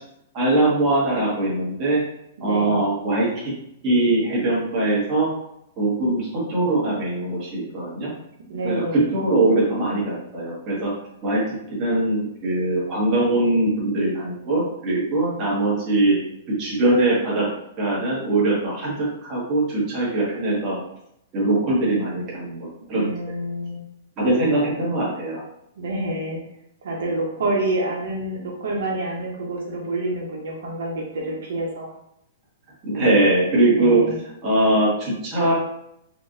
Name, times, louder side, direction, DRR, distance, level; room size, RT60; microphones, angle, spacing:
voice 1, 0.3-2.0 2.4-3.5 3.8-5.3 5.8-8.1 8.6-10.9 11.2-16.2 16.5-17.5 17.8-20.8 21.3-23.0 24.2-25.4 32.8-34.0 34.4-35.5, right 2 dB, 25° right, -7 dB, 1.4 m, -21 dB
voice 2, 2.4-2.9 8.5-9.0 22.8-23.8 25.8-26.4 26.8-31.9 33.8-34.1, right 1 dB, 75° right, -2 dB, 0.9 m, -28 dB
4.3 x 2.5 x 2.6 m, 0.78 s
hypercardioid pair, 165°, 0 cm